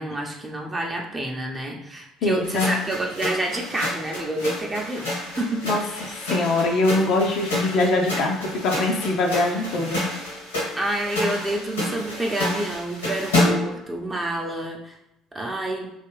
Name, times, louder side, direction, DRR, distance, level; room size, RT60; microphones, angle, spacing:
voice 1, 0.0-5.1 5.4-5.6 10.8-15.0 15.3-15.9, right 1 dB, 20° right, 0 dB, 0.7 m, -28 dB
voice 2, 2.2-2.7 5.6-10.0, left 2 dB, 60° left, 1 dB, 0.5 m, -23 dB
sound 1, 2.4-13.8, left 1 dB, 85° left, 1.2 m, -29 dB
3.2 x 2.9 x 3.2 m, 0.87 s
figure-of-eight pair, 55°, 0 cm